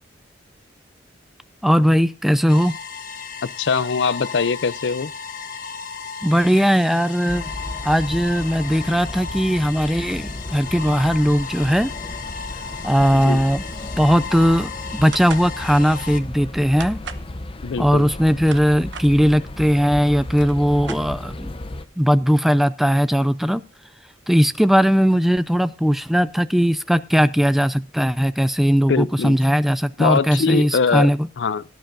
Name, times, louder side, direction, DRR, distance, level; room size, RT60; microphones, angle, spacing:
voice 1, 1.6-2.8 6.2-7.5 7.8-11.9 12.8-13.6 14.0-17.0 17.8-21.5 22.0-23.6 24.3-31.2, equal, ahead, 0.4 m, -18 dB
sound 1, 2.5-16.2, left 6 dB, 50° left, 1.3 m, -35 dB
voice 2, 3.4-5.1 13.1-13.4 17.6-18.1 28.9-29.4 30.0-31.1 31.4-31.6, left 5 dB, 75° left, 0.5 m, -22 dB
sound 2, 7.3-21.9, left 1 dB, 30° left, 0.7 m, -34 dB
sound 3, 15.1-15.5 16.8-17.3 18.2-19.1 19.9-20.0 20.3-21.5, right 6 dB, 80° right, 1.0 m, -36 dB
17.0 x 10.0 x 2.6 m
head